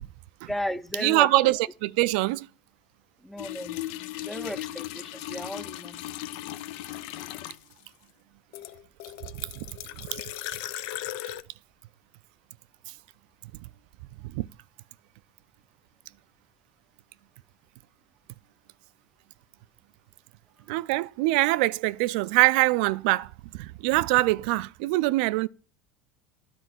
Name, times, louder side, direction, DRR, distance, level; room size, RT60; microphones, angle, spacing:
voice 1, 0.5-1.3 3.2-6.0, equal, 5° left, 0.6 m, -35 dB
voice 2, 1.0-2.5 10.0-10.2 14.3-14.5 20.7-25.5, right 19 dB, 75° right, 0.4 m, -24 dB
sound 1, 3.4-7.8 8.5-11.4, left 14 dB, 75° left, 0.6 m, -37 dB
10.0 x 4.4 x 7.6 m
supercardioid pair, 105°, 5 cm